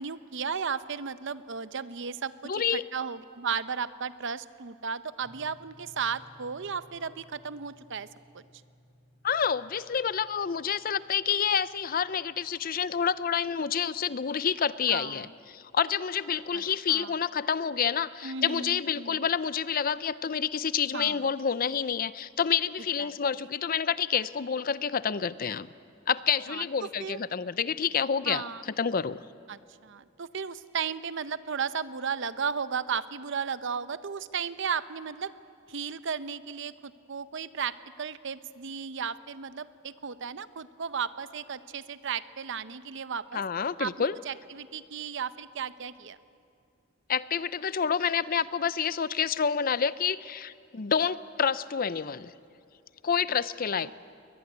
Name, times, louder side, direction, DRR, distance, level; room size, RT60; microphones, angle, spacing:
voice 1, 0.0-8.1 14.9-15.3 16.5-16.6 16.9-17.1 18.2-19.3 20.9-21.3 23.0-23.1 26.5-27.2 28.3-28.6 29.5-35.3 35.7-43.4 43.8-46.2 53.8-53.9, right 6 dB, 60° right, 14 dB, 0.7 m, -35 dB
voice 2, 2.4-2.8 9.2-25.7 26.1-28.5 28.8-29.2 43.3-44.2 47.1-52.3 53.0-53.9, left 7 dB, 40° left, 16 dB, 0.5 m, -28 dB
sound 1, 5.2-15.4, equal, 10° right, 3.1 m, -60 dB
22.0 x 20.5 x 9.6 m, 2.3 s
head